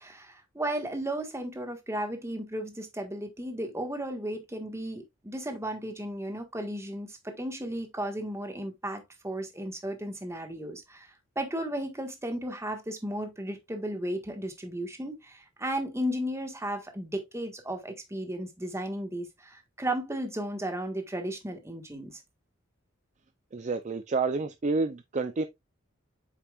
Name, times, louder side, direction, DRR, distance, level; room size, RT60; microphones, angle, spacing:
voice 1, 0.0-11.1 11.3-22.2, right 1 dB, 15° right, 1.5 m, -34 dB
voice 2, 23.5-25.5, right 3 dB, 35° right, 0.5 m, -29 dB
8.1 x 5.9 x 2.4 m
head